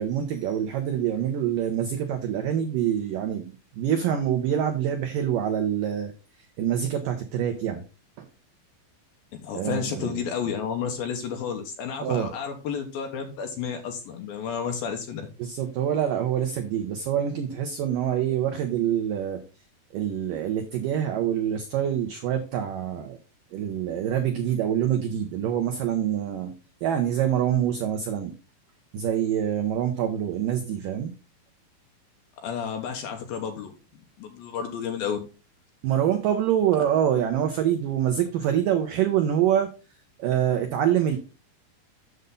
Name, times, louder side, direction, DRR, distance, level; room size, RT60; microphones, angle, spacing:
voice 1, 0.0-6.1 6.6-7.8 8.2-8.3 9.5-10.2 12.0-12.3 15.4-19.4 19.9-23.2 23.5-26.5 26.8-28.3 28.9-31.1 35.8-39.7 40.2-41.2, right 10 dB, 80° right, 6 dB, 1.9 m, -25 dB
voice 2, 9.3-15.2 32.4-33.7 34.2-35.2, left 7 dB, 70° left, 4 dB, 2.5 m, -31 dB
8.0 x 6.8 x 3.8 m, 0.32 s
omnidirectional pair, 5.1 m